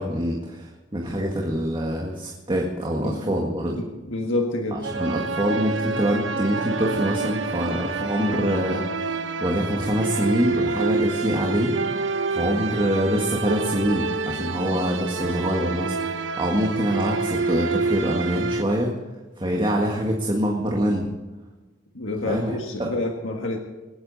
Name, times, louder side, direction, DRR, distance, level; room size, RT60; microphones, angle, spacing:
voice 1, 0.0-3.8 4.7-12.0 12.3-19.0 19.4-21.1 22.2-22.9, equal, 25° right, -1 dB, 1.8 m, -25 dB
voice 2, 3.7-4.8 21.9-23.6, left 2 dB, 75° left, 2 dB, 1.7 m, -28 dB
sound 1, 4.8-18.6, right 4 dB, 70° right, 0.9 m, -28 dB
26.0 x 10.0 x 4.2 m, 1.2 s
head